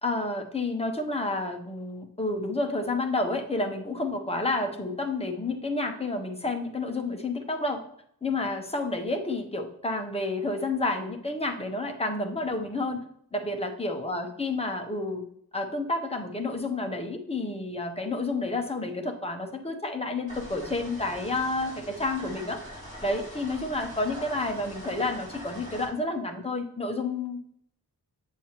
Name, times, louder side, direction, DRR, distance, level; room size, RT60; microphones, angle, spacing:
voice 1, 0.0-7.8 8.2-13.0 13.3-15.2 15.5-22.6 23.0-27.4, left 2 dB, 15° left, 4 dB, 0.7 m, -30 dB
sound 1, 20.3-25.9, equal, 20° right, 3.5 m, -43 dB
7.4 x 7.4 x 2.9 m, 0.68 s
wide cardioid pair, 165°, 38 cm